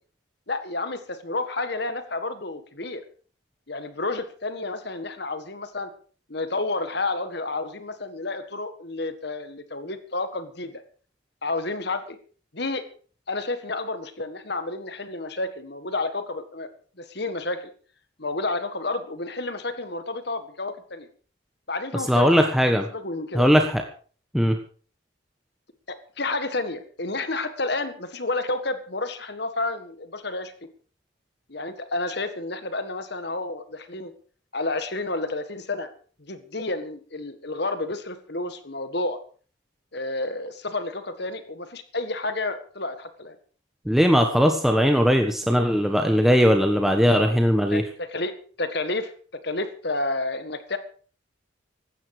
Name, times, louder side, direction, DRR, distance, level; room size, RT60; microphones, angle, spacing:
voice 1, 0.5-3.0 3.7-5.9 6.3-10.8 11.4-12.2 12.5-12.8 13.3-16.7 17.0-17.6 18.2-21.1 21.7-22.5 22.9-23.5 25.9-30.5 31.5-34.1 34.5-35.9 36.2-39.2 39.9-43.4 47.7-49.1 49.4-50.8, left 2 dB, 55° left, 10 dB, 1.7 m, -30 dB
voice 2, 22.1-22.9 23.3-23.8 24.3-24.6 43.9-47.8, equal, ahead, 4 dB, 1.2 m, -19 dB
16.5 x 13.0 x 5.0 m, 0.42 s
head